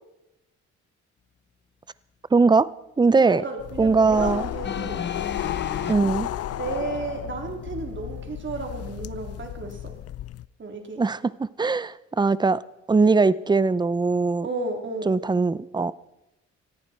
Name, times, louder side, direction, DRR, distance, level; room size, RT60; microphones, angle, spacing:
voice 1, 2.3-2.7 3.0-3.4 3.8-4.5 5.9-6.3 11.0-12.6 12.9-14.5 15.1-15.9, right 4 dB, 15° right, 19 dB, 0.5 m, -20 dB
voice 2, 3.2-5.1 6.5-9.9 10.6-11.0 14.4-15.2, right 3 dB, 40° right, 3 dB, 3.6 m, -33 dB
sound 1, 3.6-10.5, left 12 dB, 55° left, 0.5 m, -33 dB
sound 2, 4.6-5.9 6.9-7.0, left 6 dB, 35° left, 1.2 m, -33 dB
19.5 x 14.0 x 4.4 m, 0.94 s
cardioid pair, 90°, 30 cm